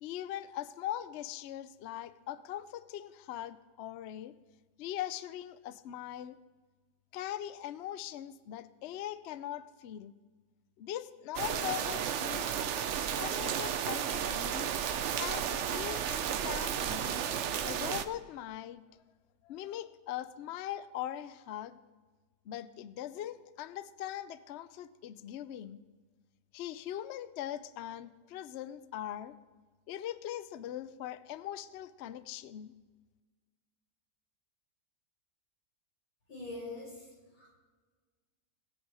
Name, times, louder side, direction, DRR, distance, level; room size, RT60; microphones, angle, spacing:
voice 1, 0.0-4.3 4.8-6.4 7.1-10.1 10.8-12.6 13.2-14.7 15.2-17.2 17.6-18.8 19.4-21.8 22.4-25.8 26.5-29.4 29.9-32.7, left 12 dB, 90° left, 15 dB, 0.6 m, -41 dB
sound 1, 11.3-18.0, right 8 dB, 60° right, 0.8 m, -33 dB
voice 2, 36.3-37.1 37.4-37.5, left 2 dB, 60° left, -4 dB, 5.7 m, -43 dB
21.0 x 7.2 x 4.9 m, 1.3 s
omnidirectional pair, 1.8 m